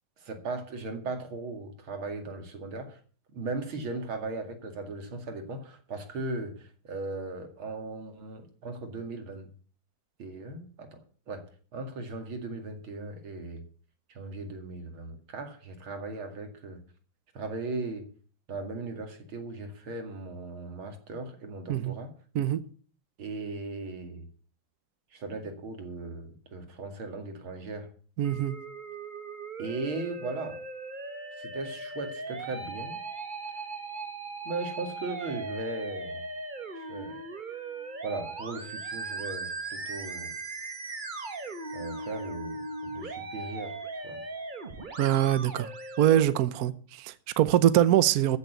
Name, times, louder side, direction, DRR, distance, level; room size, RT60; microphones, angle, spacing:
voice 1, 0.2-3.0 3.3-9.5 10.2-11.0 11.3-11.5 11.7-13.6 14.1-16.8 17.3-18.1 18.5-22.1 23.2-24.3 25.1-27.9 29.6-30.6 31.4-33.0 34.4-36.2 36.8-37.2 38.0-40.4 41.7-43.8 44.0-44.2, right 3 dB, 80° right, 3.0 m, -37 dB
Musical instrument, 28.2-46.2, right 3 dB, 25° right, 1.3 m, -39 dB
voice 2, 28.2-28.6 45.0-45.7 46.0-48.4, right 11 dB, 60° right, 1.1 m, -23 dB
14.5 x 6.9 x 8.1 m
omnidirectional pair, 2.2 m